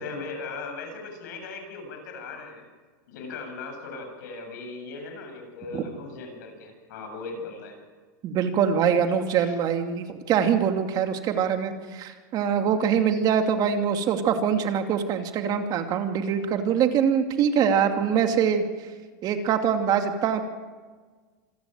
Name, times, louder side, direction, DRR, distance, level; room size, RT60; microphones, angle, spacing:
voice 1, 0.0-2.7 3.1-7.8 9.1-9.5, left 3 dB, 75° left, 4 dB, 7.7 m, -38 dB
voice 2, 8.2-18.6 19.2-20.4, right 7 dB, 40° right, 5 dB, 2.6 m, -24 dB
27.0 x 13.0 x 9.3 m, 1.4 s
supercardioid pair, 125°, 10 cm